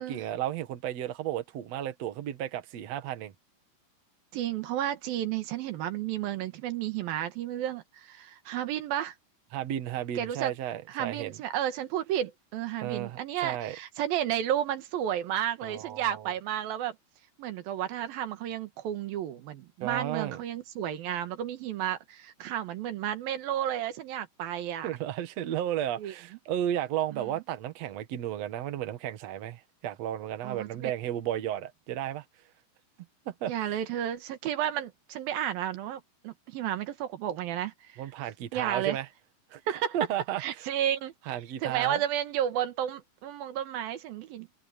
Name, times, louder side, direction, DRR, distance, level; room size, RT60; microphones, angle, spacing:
voice 1, 0.0-3.3 9.5-11.4 12.8-13.8 15.6-16.3 19.8-20.4 24.8-32.2 33.3-33.8 38.0-39.1 39.5-39.6 39.9-40.7 41.3-42.0, right 11 dB, 55° right, 2.3 m, -33 dB
voice 2, 4.3-9.1 10.2-10.5 10.9-17.0 17.4-24.9 26.0-26.1 27.1-27.3 30.4-30.9 33.5-38.0 38.5-39.0 39.7-40.0 40.4-41.1 41.6-44.5, right 11 dB, 85° right, 3.2 m, -32 dB
omnidirectional pair, 4.1 m